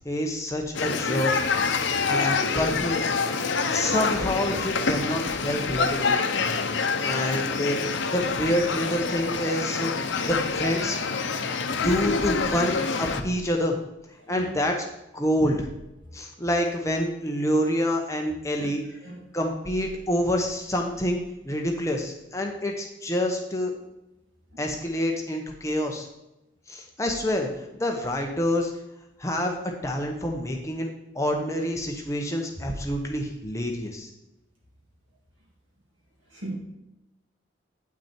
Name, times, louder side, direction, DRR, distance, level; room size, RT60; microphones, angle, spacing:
voice 1, 0.0-1.3 2.0-3.4 3.7-6.2 7.0-11.0 11.3-11.4 11.8-13.8 14.3-14.8 15.1-15.7 16.1-18.8 19.3-23.7 24.6-26.1 26.7-28.7 29.2-29.6 29.8-30.9 31.1-34.1, equal, 15° left, 1 dB, 0.9 m, -27 dB
sound 1, 0.7-13.2, left 4 dB, 70° left, 0.7 m, -26 dB
voice 2, 11.2-11.9 14.2-14.6 15.4-15.5 18.6-18.7 19.0-19.2 24.5-24.6 36.3-36.6, right 1 dB, 80° right, -3 dB, 2.9 m, -40 dB
9.0 x 5.9 x 4.4 m, 0.91 s
head